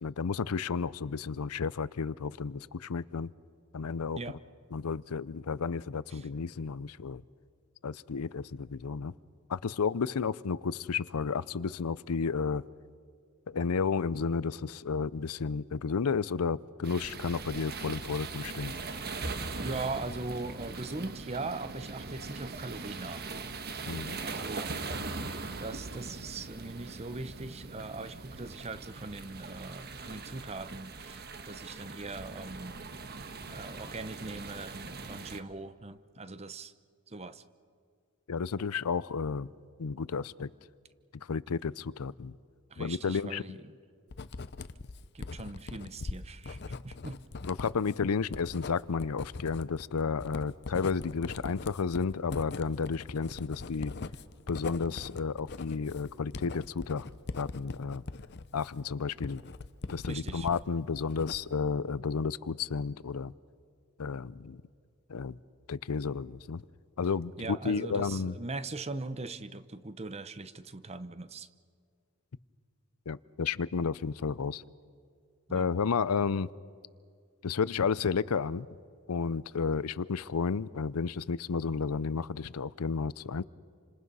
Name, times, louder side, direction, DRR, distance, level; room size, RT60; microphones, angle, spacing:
voice 1, 0.0-3.3 3.7-4.2 4.7-7.2 7.8-9.1 9.5-12.6 13.5-18.7 23.9-24.2 38.3-39.5 39.8-40.5 41.1-42.4 42.8-43.4 47.5-53.9 54.5-57.1 57.4-58.0 58.5-59.4 59.9-63.3 64.0-64.6 65.1-65.4 65.7-66.6 67.0-68.3 73.1-74.6 75.5-76.5 77.4-78.7 79.1-83.4, left 5 dB, 85° left, 19 dB, 0.6 m, -32 dB
sound 1, 16.8-35.4, right 3 dB, 45° right, 1.3 m, -41 dB
voice 2, 19.6-23.3 23.8-24.7 25.6-32.8 33.5-36.7 37.1-37.4 42.7-43.8 45.1-47.2 60.0-60.5 67.4-71.5 75.5-75.7, right 3 dB, 30° right, 13 dB, 0.8 m, -40 dB
Writing, 44.1-60.6 61.0-61.7, left 3 dB, 50° left, 0.7 m, -41 dB
29.0 x 26.0 x 5.5 m, 2.1 s
head